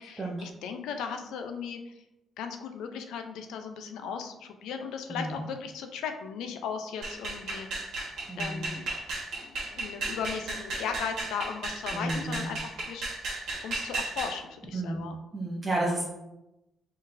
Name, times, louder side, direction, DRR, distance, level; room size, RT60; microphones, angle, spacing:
voice 1, 0.0-1.9 2.4-7.7 8.4-8.9 9.4-13.0 13.6-15.2, left 6 dB, 85° left, 6 dB, 0.5 m, -37 dB
sound 1, 7.0-14.4, right 2 dB, 80° right, 1.5 m, -35 dB
voice 2, 8.3-8.6 11.9-12.5 14.7-15.0 15.3-16.1, right 1 dB, 25° right, -4 dB, 0.8 m, -31 dB
4.0 x 3.9 x 2.6 m, 0.93 s
cardioid pair, 90°, 0 cm